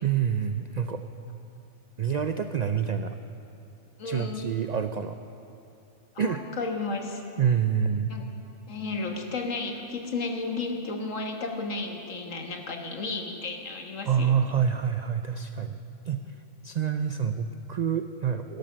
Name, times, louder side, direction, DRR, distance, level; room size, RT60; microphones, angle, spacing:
voice 1, 0.0-1.0 2.0-3.2 4.0-5.2 6.2-6.4 7.4-8.1 14.0-15.8 16.1-16.2 16.6-18.6, right 7 dB, 80° right, 8 dB, 0.3 m, -27 dB
voice 2, 4.0-4.4 6.2-7.2 8.1-8.2 8.7-14.3 16.1-16.2, left 3 dB, 70° left, 2 dB, 1.8 m, -33 dB
17.0 x 12.0 x 6.4 m, 2.6 s
omnidirectional pair, 1.4 m